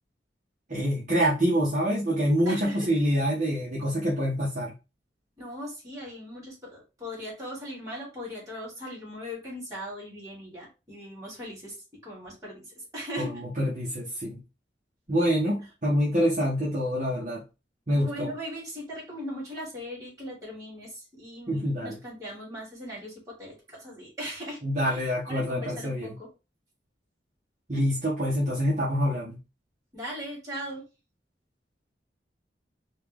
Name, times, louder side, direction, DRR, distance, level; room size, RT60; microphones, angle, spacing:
voice 1, 0.7-4.7 13.2-14.4 15.1-17.4 17.9-18.3 21.5-22.0 24.6-26.1 27.7-29.4, equal, 40° right, -6 dB, 1.1 m, -26 dB
voice 2, 2.4-2.9 5.4-11.8 12.0-13.3 17.9-24.6 24.9-26.3 29.9-30.9, equal, 20° right, -6 dB, 2.4 m, -39 dB
4.2 x 2.4 x 3.4 m, 0.28 s
head